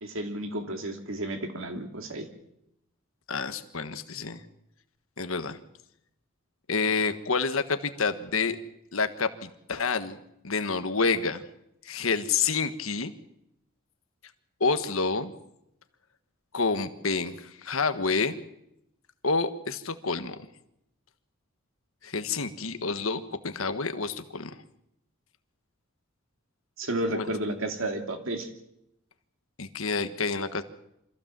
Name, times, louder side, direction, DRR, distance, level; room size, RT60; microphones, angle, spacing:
voice 1, 0.0-2.3 26.8-28.5, right 1 dB, 70° right, 5 dB, 2.8 m, -32 dB
voice 2, 3.3-4.4 5.2-5.6 6.7-8.6 8.9-10.2 10.4-11.4 11.8-13.1 14.6-15.3 16.5-18.3 19.2-20.4 22.0-24.6 27.1-27.3 29.6-30.6, left 4 dB, 70° left, 10 dB, 1.4 m, -28 dB
25.5 x 15.5 x 7.5 m, 0.81 s
head